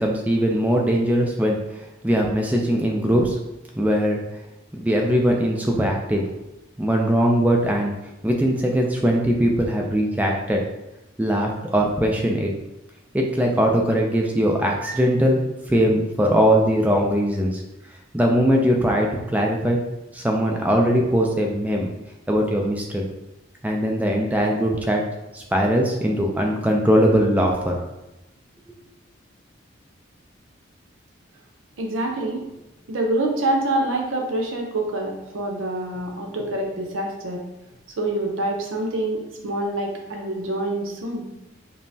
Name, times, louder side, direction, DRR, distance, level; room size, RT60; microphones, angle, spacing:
voice 1, 0.0-1.6 2.0-3.4 3.7-4.2 4.8-6.2 6.8-7.9 8.2-10.6 11.2-12.5 13.1-17.6 18.1-19.8 20.1-21.9 22.3-23.0 23.6-25.0 25.3-27.8, equal, 10° right, 0 dB, 0.3 m, -20 dB
voice 2, 31.8-32.4 32.9-37.4 38.0-41.3, right 1 dB, 80° right, 1 dB, 0.6 m, -26 dB
5.3 x 2.0 x 2.7 m, 0.94 s
head